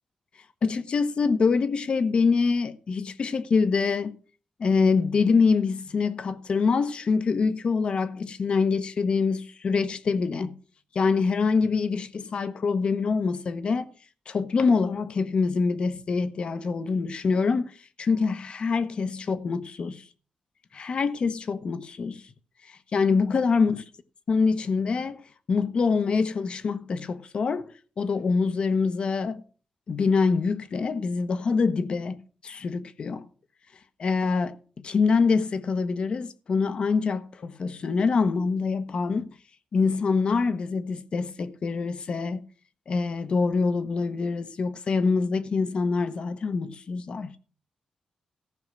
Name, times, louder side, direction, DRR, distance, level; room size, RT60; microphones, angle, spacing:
voice 1, 0.6-4.1 4.6-10.5 10.9-13.9 14.3-20.0 20.7-22.2 22.7-23.8 24.3-25.2 25.5-29.4 29.9-32.2 32.4-33.3 34.0-39.3 39.7-42.4 42.9-47.3, left 4 dB, 55° left, 1.0 m, -25 dB
14.5 x 5.5 x 6.3 m
cardioid pair, 105°, 2 cm